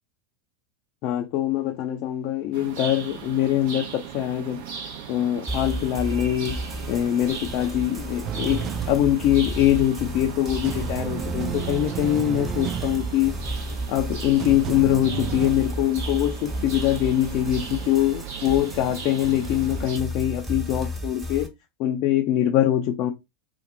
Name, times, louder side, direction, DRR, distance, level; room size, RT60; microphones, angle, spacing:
voice 1, 1.0-4.6 5.1-6.6 6.9-13.3 13.9-21.5 21.8-23.1, left 12 dB, 50° left, 0.5 m, -23 dB
sound 1, 2.5-20.0, right 7 dB, 60° right, 0.9 m, -38 dB
sound 2, 5.5-21.5, equal, 15° right, 1.3 m, -34 dB
sound 3, 8.2-10.3 10.6-15.5, right 8 dB, 35° right, 0.4 m, -33 dB
2.7 x 2.5 x 3.9 m
figure-of-eight pair, 85°, 0 cm